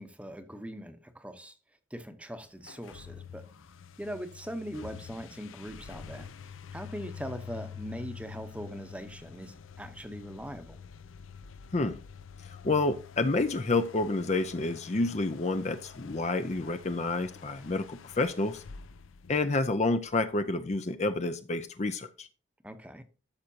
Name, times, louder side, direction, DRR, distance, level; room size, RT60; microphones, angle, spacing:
voice 1, 0.0-1.6 1.9-3.5 4.0-10.8 22.6-23.0, equal, 5° right, 0.9 m, -41 dB
sound 1, 2.6-20.1, left 6 dB, 85° left, 0.6 m, -47 dB
voice 2, 12.6-18.6 19.3-22.3, left 2 dB, 35° left, 0.5 m, -29 dB
13.0 x 6.5 x 2.8 m
head